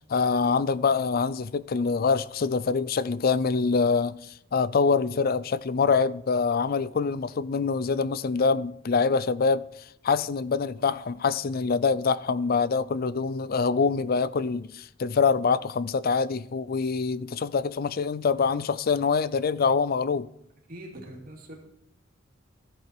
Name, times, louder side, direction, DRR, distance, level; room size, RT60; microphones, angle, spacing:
voice 1, 0.1-9.6 10.0-20.3, left 5 dB, 50° left, 0.4 m, -25 dB
voice 2, 20.7-21.6, right 1 dB, 45° right, 2.7 m, -42 dB
14.0 x 7.9 x 4.4 m
head